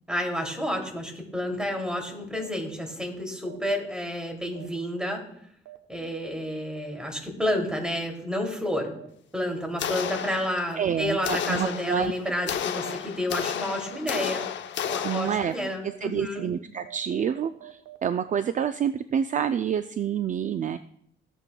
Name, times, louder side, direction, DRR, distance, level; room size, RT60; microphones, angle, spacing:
voice 1, 0.1-5.2 5.9-8.9 9.3-14.4 14.8-16.5, left 1 dB, 5° right, 1 dB, 2.8 m, -30 dB
sound 1, 2.3-2.5 3.4-3.6 4.5-4.7 5.6-5.8 6.7-6.9 7.8-8.0 8.9-9.1 10.0-10.2 11.1-11.3 12.2-12.4 12.8-13.0 13.3-13.5 13.8-14.0 14.3-14.5 14.8-15.0 15.3-15.5 15.8-16.0 16.3-16.5 16.8-18.0, right 17 dB, 80° right, 1.0 m, -45 dB
sound 2, 9.8-10.8 11.2-15.7, left 9 dB, 65° left, 0.8 m, -32 dB
voice 2, 10.8-12.1 15.0-15.5 15.8-20.8, right 8 dB, 40° right, 11 dB, 0.4 m, -28 dB
15.0 x 8.8 x 2.3 m, 0.70 s
cardioid pair, 90°, 20 cm